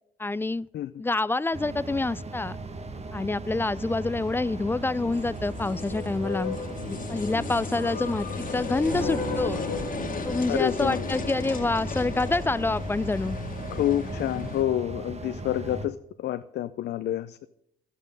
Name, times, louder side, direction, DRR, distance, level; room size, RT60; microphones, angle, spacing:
voice 1, 0.2-0.7 1.0-2.6 3.1-6.6 6.9-9.6 10.2-13.4, left 2 dB, 10° left, 22 dB, 0.3 m, -27 dB
sound 1, 1.5-15.9, right 2 dB, 35° right, 1.6 m, -38 dB
sound 2, 3.4-14.6, left 5 dB, 45° left, 1.8 m, -35 dB
Piano, 8.9-11.3, right 1 dB, 65° right, 5.4 m, -38 dB
voice 2, 10.5-11.0 13.7-17.4, left 12 dB, 65° left, 12 dB, 0.5 m, -28 dB
12.5 x 8.2 x 5.4 m, 0.80 s
supercardioid pair, 60°, 19 cm